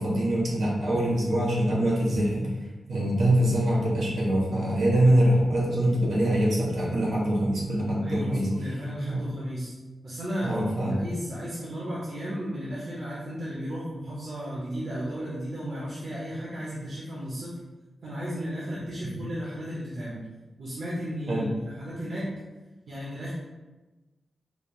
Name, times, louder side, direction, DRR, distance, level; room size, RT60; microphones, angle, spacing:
voice 1, 0.0-2.5 2.9-8.5 9.1-9.2 10.4-10.9 21.3-21.5, right 1 dB, 80° right, -4 dB, 1.4 m, -24 dB
voice 2, 8.0-9.7 10.0-17.5 18.0-20.2 20.6-22.3 22.9-23.3, equal, 60° right, -7 dB, 0.9 m, -34 dB
5.1 x 3.3 x 2.4 m, 1.2 s
wide cardioid pair, 160°, 0 cm